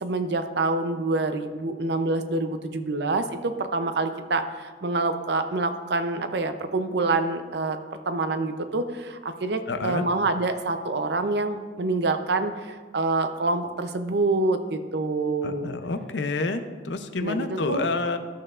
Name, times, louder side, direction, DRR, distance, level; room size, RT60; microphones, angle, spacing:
voice 1, 0.0-7.8 8.1-15.7 17.2-17.8, right 3 dB, 65° right, 8 dB, 0.6 m, -26 dB
voice 2, 9.7-10.1 15.4-18.2, left 3 dB, 80° left, 8 dB, 0.6 m, -28 dB
13.5 x 6.7 x 2.5 m, 1.5 s
head